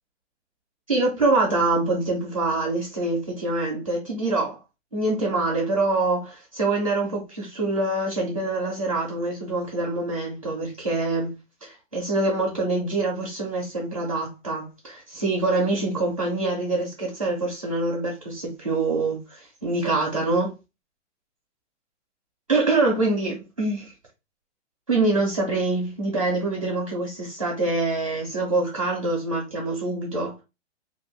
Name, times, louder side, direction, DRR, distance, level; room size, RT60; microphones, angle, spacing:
voice 1, 0.9-4.6 4.9-11.3 11.6-20.5 22.5-23.9 24.9-30.4, right 2 dB, 30° right, 0.4 m, -25 dB
2.5 x 2.4 x 3.1 m
hypercardioid pair, 180°, 36 cm